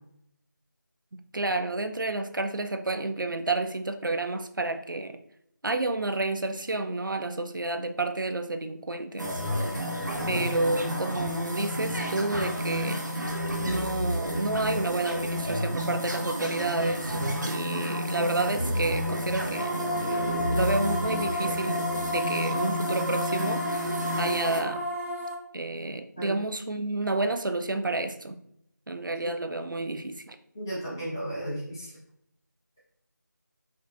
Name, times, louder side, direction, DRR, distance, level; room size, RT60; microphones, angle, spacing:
voice 1, 1.1-5.2 5.6-9.7 10.3-13.3 13.6-23.9 24.2-24.8 25.5-28.4 28.9-30.4, right 2 dB, 85° right, 7 dB, 0.5 m, -30 dB
sound 1, 9.2-24.6, equal, 70° right, 1.1 m, -31 dB
sound 2, 19.5-25.3, equal, 40° right, 1.5 m, -31 dB
voice 2, 30.5-31.9, right 1 dB, 10° left, -10 dB, 0.9 m, -34 dB
5.6 x 3.0 x 2.5 m, 0.75 s
figure-of-eight pair, 170°, 10 cm